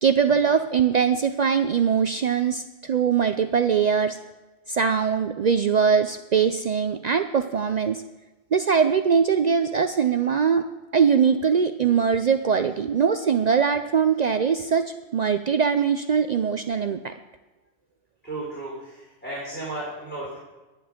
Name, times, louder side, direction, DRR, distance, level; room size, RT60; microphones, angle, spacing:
voice 1, 0.0-4.2 4.7-8.0 8.5-10.6 10.9-17.1, right 6 dB, 80° right, 8 dB, 0.3 m, -22 dB
voice 2, 18.2-20.4, right 2 dB, 10° left, -6 dB, 3.6 m, -34 dB
10.5 x 10.0 x 5.1 m, 1.1 s
omnidirectional pair, 1.3 m